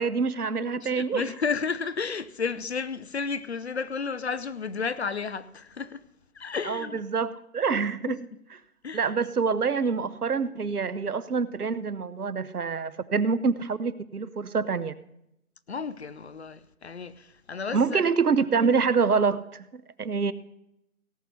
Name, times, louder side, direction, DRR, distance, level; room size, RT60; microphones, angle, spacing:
voice 1, 0.0-1.3 6.6-8.2 8.9-14.9 17.7-20.3, right 5 dB, 85° right, 1.0 m, -26 dB
voice 2, 0.8-6.0 6.3-7.0 8.8-9.1 15.7-18.1, left 5 dB, 45° left, 0.7 m, -32 dB
17.5 x 6.0 x 6.7 m
figure-of-eight pair, 155°, 44 cm